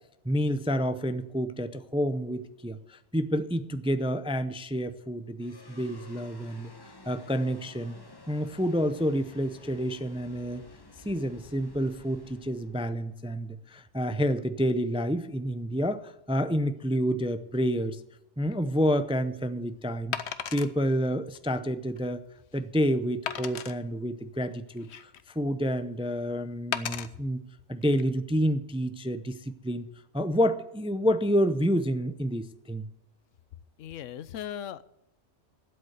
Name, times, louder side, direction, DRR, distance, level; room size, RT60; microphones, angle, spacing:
voice 1, 0.2-6.7 7.1-7.9 8.3-10.6 11.0-18.0 18.4-20.2 20.5-22.2 22.5-24.9 25.3-27.4 27.7-29.8 30.1-32.9, equal, 10° right, 11 dB, 0.4 m, -29 dB
sound 1, 5.4-13.9, left 2 dB, 20° left, 1.2 m, -53 dB
Wood, 18.5-18.7 20.1-20.7 21.3-21.4 22.0-22.1 23.3-23.7 24.5-25.3 26.7-27.1 27.8-28.0, left 8 dB, 65° left, 1.1 m, -34 dB
voice 2, 33.8-34.9, left 10 dB, 90° left, 17 dB, 1.0 m, -38 dB
12.5 x 7.9 x 8.0 m, 0.88 s
omnidirectional pair, 1.2 m